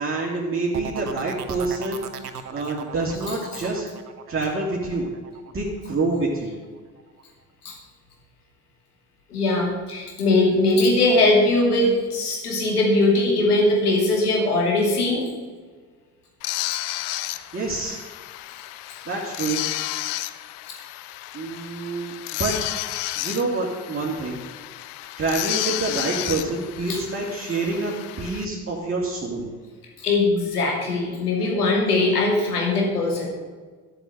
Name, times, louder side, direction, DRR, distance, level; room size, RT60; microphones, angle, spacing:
voice 1, 0.0-3.9 4.3-5.1 5.5-6.5 17.5-18.0 19.1-19.6 21.3-22.6 23.2-24.4 25.2-29.5, right 3 dB, 30° right, -4 dB, 2.8 m, -27 dB
sound 1, 0.7-6.4 6.7-7.2, right 7 dB, 90° right, 0.8 m, -38 dB
voice 2, 3.3-3.6 7.6-7.7 9.3-15.3 26.9-27.0 30.0-33.3, left 2 dB, 85° left, 0 dB, 2.6 m, -21 dB
sound 2, 16.4-28.5, left 16 dB, 60° left, 0.8 m, -32 dB
13.0 x 7.2 x 7.9 m, 1.5 s
figure-of-eight pair, 50°, 45 cm